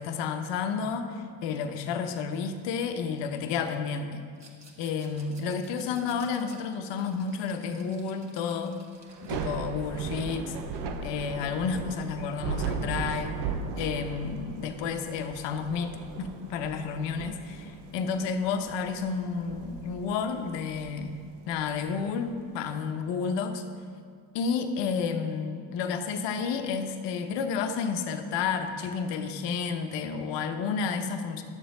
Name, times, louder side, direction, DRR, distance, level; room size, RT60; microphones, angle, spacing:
voice 1, 0.0-4.2 4.8-8.8 9.2-10.6 11.0-13.4 13.7-21.2 21.5-23.6 24.3-31.4, left 5 dB, 65° left, 7 dB, 1.0 m, -31 dB
Rattle, 4.3-9.4, right 3 dB, 35° right, 1.8 m, -55 dB
Thunder / Rain, 9.1-22.3, right 5 dB, 60° right, 0.9 m, -37 dB
11.5 x 7.0 x 3.8 m, 2.2 s
hypercardioid pair, 60°, 46 cm